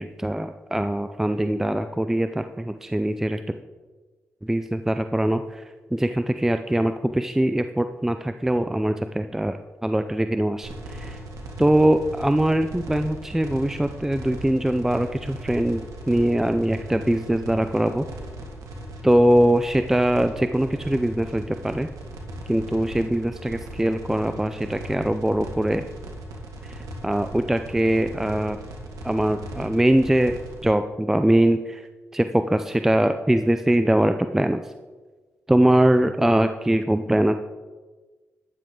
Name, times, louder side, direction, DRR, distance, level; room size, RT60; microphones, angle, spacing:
voice 1, 0.0-3.4 4.4-5.6 5.9-11.2 11.6-18.1 19.0-21.9 22.5-25.8 26.6-28.6 29.0-30.4 30.6-31.8 32.1-34.6 35.5-37.4, right 1 dB, 5° right, 9 dB, 0.4 m, -22 dB
sound 1, 10.6-30.6, right 1 dB, 85° right, 2.0 m, -38 dB
12.5 x 10.0 x 3.8 m, 1.3 s
cardioid pair, 85°, 5 cm